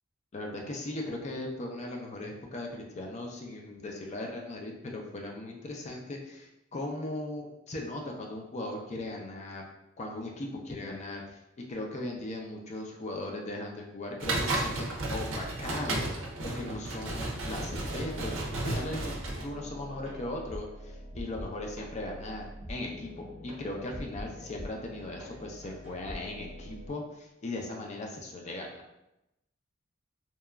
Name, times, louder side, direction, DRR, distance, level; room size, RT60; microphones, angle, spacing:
voice 1, 0.3-9.6 10.0-11.4 11.7-16.1 16.4-19.1 19.4-23.1 23.4-28.7, left 2 dB, 35° left, 0 dB, 0.4 m, -38 dB
sound 1, 14.2-19.4, right 2 dB, 90° right, 0.5 m, -33 dB
sound 2, 17.6-26.9, equal, 30° right, 0.7 m, -44 dB
2.9 x 2.3 x 2.3 m, 0.89 s
head